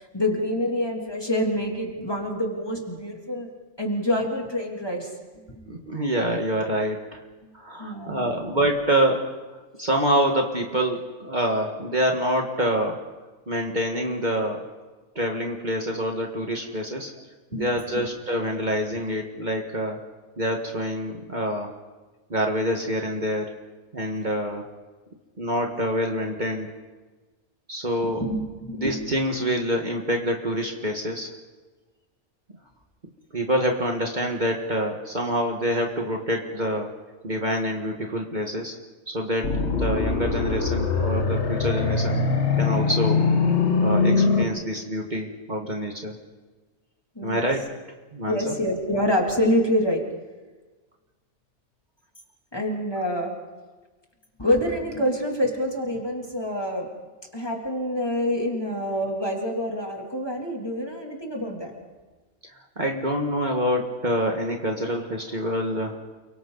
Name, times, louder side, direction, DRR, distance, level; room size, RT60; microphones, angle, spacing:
voice 1, 0.1-3.5 3.8-5.4 7.8-8.4 17.5-17.7 17.9-18.0 28.0-29.0 47.1-47.5 48.3-50.0 52.5-53.3 54.4-56.9 57.3-61.7, equal, 20° left, 0 dB, 3.0 m, -26 dB
voice 2, 5.7-7.2 7.5-9.3 9.8-13.0 13.5-14.6 15.2-17.1 17.5-20.0 20.4-21.7 22.3-23.5 23.9-24.7 25.4-26.7 27.7-28.2 28.7-31.3 33.3-36.9 37.2-38.8 39.1-42.2 42.6-43.2 43.8-46.1 47.2-47.7 48.1-48.5 62.8-66.0, equal, 40° right, 1 dB, 1.8 m, -26 dB
sound 1, 39.4-44.4, left 4 dB, 70° left, 1.8 m, -22 dB
29.0 x 23.5 x 4.0 m, 1.3 s
omnidirectional pair, 1.2 m